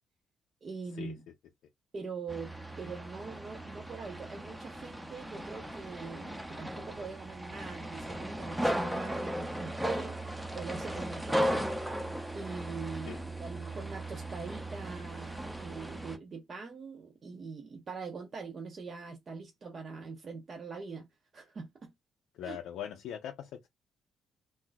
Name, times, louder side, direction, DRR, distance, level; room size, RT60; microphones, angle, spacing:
voice 1, 0.6-1.2 1.9-10.2 10.5-11.6 12.3-21.1 21.3-21.9 22.4-22.6, right 4 dB, 45° right, 0.7 m, -43 dB
sound 1, 2.3-16.2, right 1 dB, 10° right, 0.6 m, -36 dB
voice 2, 22.3-23.7, left 9 dB, 80° left, 0.4 m, -41 dB
2.6 x 2.2 x 3.9 m
cardioid pair, 90°, 0 cm